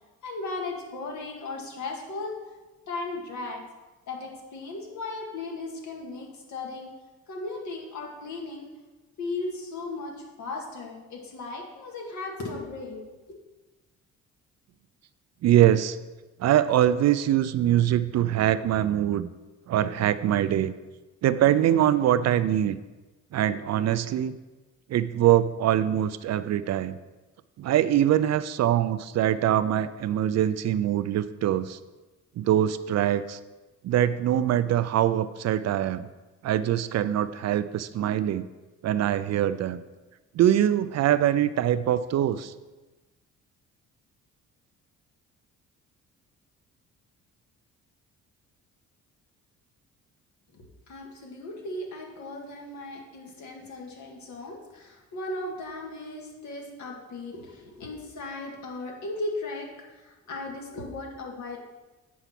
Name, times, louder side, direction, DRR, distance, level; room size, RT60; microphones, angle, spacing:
voice 1, 0.2-2.3 2.9-3.6 4.1-6.9 7.3-8.7 9.2-13.0 50.5-61.6, left 2 dB, 70° left, 0 dB, 2.1 m, -36 dB
voice 2, 15.4-16.0 16.4-19.3 19.7-20.7 21.2-22.8 23.3-24.4 24.9-27.0 27.6-31.8 32.4-33.4 33.8-36.1 36.4-38.5 38.8-39.8 40.3-42.5, right 11 dB, 60° right, 14 dB, 0.5 m, -23 dB
8.3 x 4.7 x 5.9 m, 1.2 s
cardioid pair, 90°, 30 cm